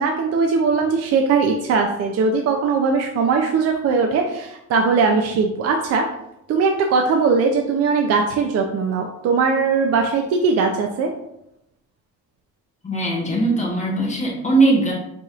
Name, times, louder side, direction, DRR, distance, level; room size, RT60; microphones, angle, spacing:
voice 1, 0.0-6.0 6.5-11.1, right 4 dB, 55° right, 2 dB, 0.4 m, -20 dB
voice 2, 12.8-14.9, right 2 dB, 25° left, -2 dB, 0.9 m, -19 dB
4.8 x 2.9 x 2.4 m, 0.82 s
cardioid pair, 130°, 31 cm